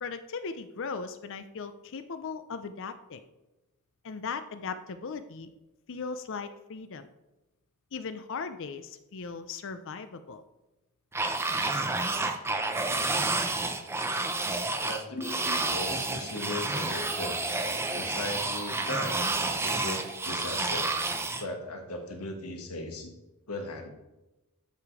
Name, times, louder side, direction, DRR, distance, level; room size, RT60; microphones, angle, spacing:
voice 1, 0.0-3.2 4.0-5.5 5.9-7.1 7.9-10.4, left 5 dB, 60° left, 11 dB, 0.5 m, -38 dB
sound 1, 11.1-21.4, right 2 dB, 10° right, 0.6 m, -30 dB
voice 2, 14.8-17.4 17.9-19.3 19.6-20.9 21.4-23.1 23.5-23.9, left 2 dB, 85° left, 3 dB, 1.7 m, -37 dB
12.0 x 5.1 x 4.8 m, 1.0 s
head